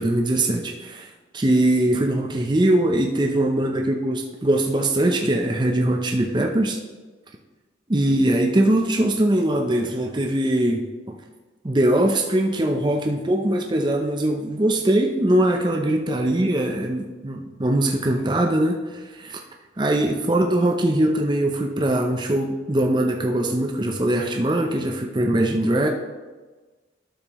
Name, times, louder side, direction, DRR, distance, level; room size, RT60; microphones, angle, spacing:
voice 1, 0.0-6.8 7.9-11.2 11.6-19.4 19.8-25.9, right 1 dB, 25° right, 2 dB, 0.6 m, -21 dB
12.0 x 6.5 x 3.0 m, 1.3 s
head